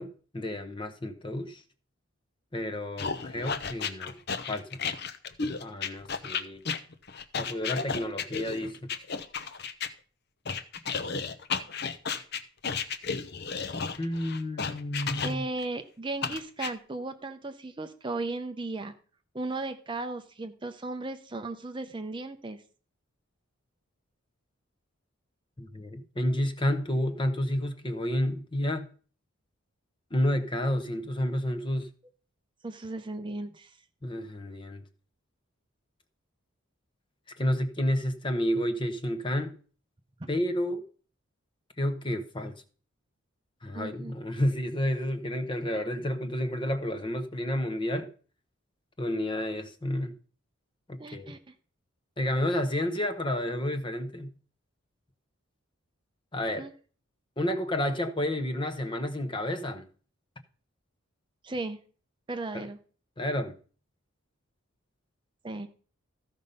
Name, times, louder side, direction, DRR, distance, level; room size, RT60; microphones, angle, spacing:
voice 1, 0.0-1.6 2.5-4.2 4.5-4.8 5.6-6.6 7.4-8.9 14.0-15.4 25.6-28.9 30.1-31.9 34.0-34.8 37.4-39.5 40.3-40.8 41.8-42.5 43.6-48.1 49.0-50.2 50.9-51.3 52.2-54.3 56.3-56.7 57.4-59.9 62.5-62.7 63.2-63.6, left 1 dB, 20° left, 0.8 m, -30 dB
sound 1, 3.0-9.9 10.4-15.6 16.2-16.7, left 5 dB, 50° left, 0.8 m, -33 dB
voice 2, 15.2-18.9 19.3-22.6 32.6-33.8 40.2-40.3 43.7-44.1 51.0-51.4 56.6-56.7 61.4-61.8 62.3-62.8 65.4-65.7, right 2 dB, 20° right, 0.6 m, -36 dB
14.5 x 5.3 x 5.5 m
head